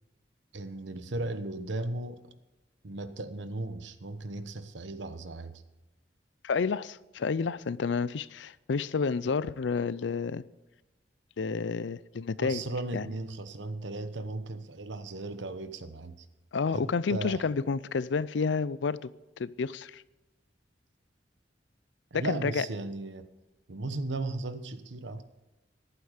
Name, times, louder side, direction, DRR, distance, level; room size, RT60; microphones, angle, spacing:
voice 1, 0.5-2.2 2.8-5.6 12.4-16.3 16.7-17.4 22.1-23.3 23.7-25.2, right 2 dB, 80° right, 1.0 m, -36 dB
voice 2, 6.4-10.4 11.4-12.6 12.9-13.1 16.5-19.1 19.4-20.0 22.1-22.6, left 5 dB, 75° left, 0.5 m, -30 dB
14.0 x 11.5 x 5.0 m
head